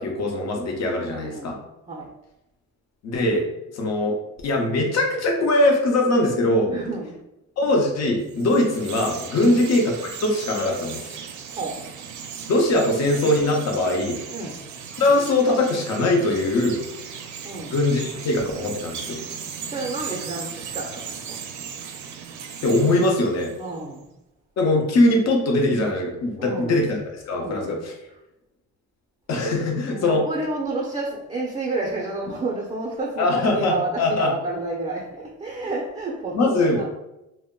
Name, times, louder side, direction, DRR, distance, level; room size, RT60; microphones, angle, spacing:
voice 1, 0.0-1.6 3.0-3.5 3.7-4.2 4.4-6.7 7.6-11.1 12.5-14.2 15.0-16.8 17.7-19.2 22.6-23.5 24.6-27.0 27.3-27.9 29.3-30.2 33.2-34.3 36.3-36.8, left 2 dB, 60° left, 1 dB, 0.7 m, -21 dB
voice 2, 1.1-1.5 1.9-2.1 6.7-7.2 9.4-9.7 11.5-11.8 14.3-14.7 17.4-17.8 19.6-21.4 23.6-24.1 26.4-26.9 27.3-27.8 29.9-36.8, right 2 dB, 20° right, -3 dB, 0.5 m, -30 dB
Chirp tweet, 8.2-23.8, right 7 dB, 70° right, 0.4 m, -37 dB
2.1 x 2.1 x 3.6 m, 0.90 s
cardioid pair, 90°, 30 cm